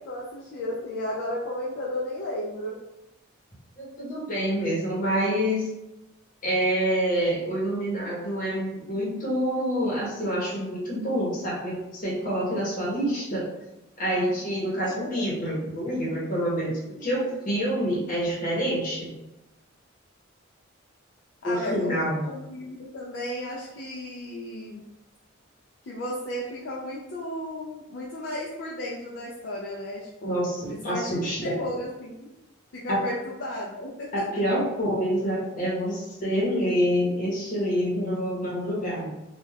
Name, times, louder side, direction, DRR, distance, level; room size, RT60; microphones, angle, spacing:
voice 1, 0.0-2.8 14.8-15.2 16.9-17.4 21.4-22.0 22.3-24.8 25.8-32.3 32.7-34.3, left 1 dB, 60° left, -4 dB, 0.4 m, -34 dB
voice 2, 3.8-5.7 6.4-13.5 14.0-19.1 21.4-22.2 30.2-31.6 32.9-33.0 34.1-39.1, equal, 40° left, -5 dB, 0.9 m, -27 dB
2.3 x 2.3 x 3.2 m, 0.95 s
head